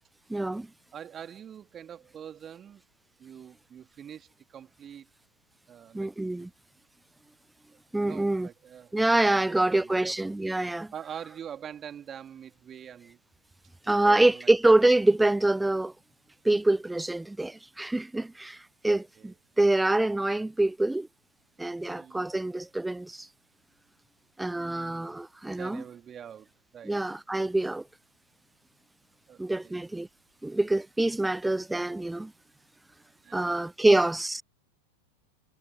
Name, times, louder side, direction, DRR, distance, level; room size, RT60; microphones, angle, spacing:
voice 1, 0.3-0.7 5.9-6.5 7.9-8.5 8.9-10.9 13.9-15.9 16.4-21.1 21.6-23.3 24.4-25.8 26.8-27.8 29.4-30.1 30.4-32.3 33.3-34.4, right 2 dB, 5° right, 0.3 m, -25 dB
voice 2, 0.9-2.8 3.2-5.1 5.7-6.5 8.0-8.9 9.3-10.3 10.9-13.2 13.8-14.5 18.9-19.4 21.8-22.3 24.5-25.2 25.5-26.9 29.3-29.9 33.2-34.0, right 9 dB, 25° right, 3.0 m, -45 dB
figure-of-eight pair, 90°, 0 cm